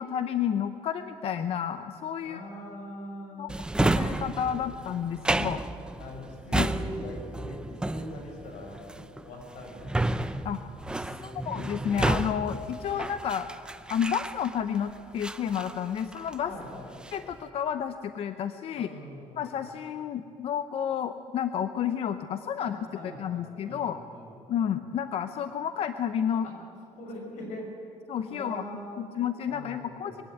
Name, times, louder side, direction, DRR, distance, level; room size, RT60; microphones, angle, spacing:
voice 1, 0.0-2.4 3.4-3.5 3.8-5.6 6.5-6.7 10.4-13.5 13.9-16.5 17.1-18.9 19.4-22.8 23.2-24.0 24.5-26.5 28.1-28.6 29.0-30.2, left 8 dB, 55° left, 10 dB, 0.7 m, -31 dB
voice 2, 2.2-3.6 4.7-4.8 5.1-5.5 6.0-10.0 11.0-11.9 16.4-17.0 18.7-19.5 22.6-24.4 26.4-26.5 27.0-28.0 28.3-29.2 29.5-30.2, left 1 dB, 85° left, 1 dB, 6.3 m, -42 dB
Drawer open or close, 3.5-14.8 15.2-16.5 16.8-17.3, right 2 dB, 5° right, 0.6 m, -31 dB
22.0 x 16.0 x 9.2 m, 2.7 s
cardioid pair, 155°, 12 cm